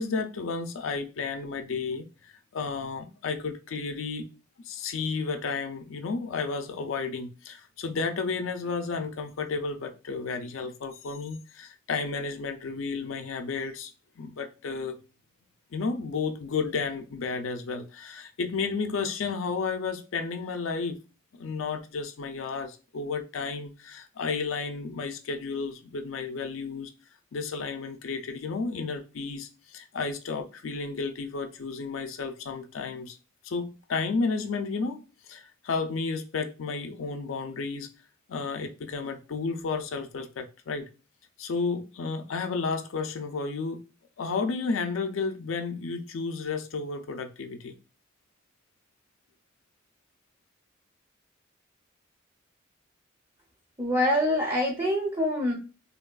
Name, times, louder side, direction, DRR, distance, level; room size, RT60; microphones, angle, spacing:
voice 1, 0.0-4.3 4.7-15.0 15.7-21.0 21.4-26.9 27.3-33.2 33.4-35.0 35.3-37.9 38.3-40.9 41.4-43.8 44.2-47.7, left 4 dB, 75° left, 0.4 m, -32 dB
voice 2, 53.8-55.6, left 1 dB, 20° right, 0.6 m, -25 dB
3.4 x 2.3 x 2.2 m
head